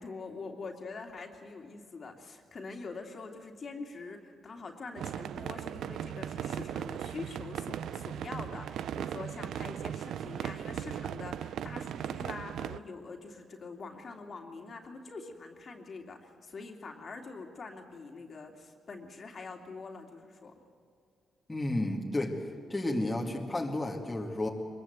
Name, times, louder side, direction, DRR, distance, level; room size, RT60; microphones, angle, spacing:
voice 1, 0.0-20.5, left 4 dB, 45° left, 3 dB, 2.6 m, -44 dB
sound 1, 5.0-12.8, right 9 dB, 85° right, 0.5 m, -37 dB
voice 2, 21.5-24.5, left 1 dB, 15° left, 0 dB, 2.2 m, -32 dB
24.0 x 22.0 x 8.1 m, 2.4 s
cardioid pair, 115°, 0 cm